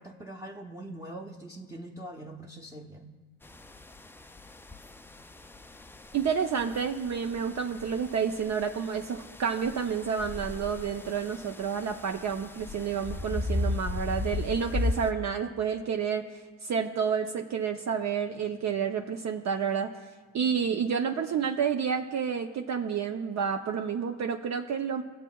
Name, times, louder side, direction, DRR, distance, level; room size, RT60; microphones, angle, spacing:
voice 1, 0.0-3.1 20.4-20.8, right 1 dB, 10° right, -1 dB, 0.7 m, -43 dB
sound 1, 3.4-15.1, left 2 dB, 5° left, 0.3 m, -36 dB
voice 2, 6.1-16.2 16.6-19.9 20.3-25.0, right 7 dB, 45° right, 4 dB, 0.6 m, -30 dB
20.5 x 7.2 x 2.3 m, 1.4 s
supercardioid pair, 70°, 38 cm